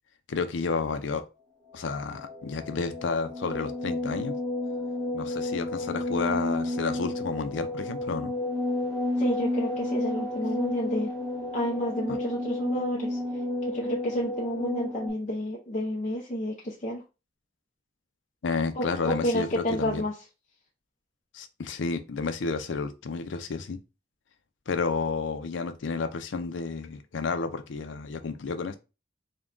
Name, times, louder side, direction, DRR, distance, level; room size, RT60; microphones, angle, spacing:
voice 1, 0.3-1.2 1.7-4.3 5.1-8.3 18.4-20.0 21.3-23.8 24.7-28.8, left 4 dB, 75° left, 0.5 m, -31 dB
sound 1, 1.7-15.1, left 2 dB, 15° left, 1.2 m, -31 dB
voice 2, 9.2-11.1 11.5-13.2 13.7-17.0 18.7-20.1, equal, 35° left, 0.6 m, -30 dB
3.6 x 2.2 x 3.7 m
head